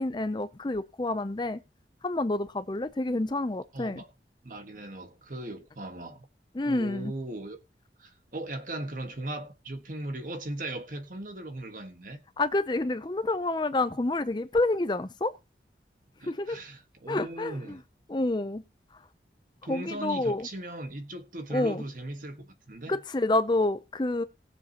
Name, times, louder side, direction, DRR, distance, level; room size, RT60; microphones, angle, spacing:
voice 1, 0.0-1.6 2.0-4.0 6.5-7.1 12.4-15.3 16.3-16.6 17.1-17.8 18.1-18.6 19.7-20.5 21.5-21.8 22.9-24.2, left 2 dB, 25° left, 0.5 m, -28 dB
voice 2, 3.7-4.1 4.4-6.3 6.6-7.6 8.0-12.2 16.2-17.8 19.6-23.0, right 1 dB, 50° right, 1.5 m, -38 dB
19.5 x 7.2 x 2.9 m
head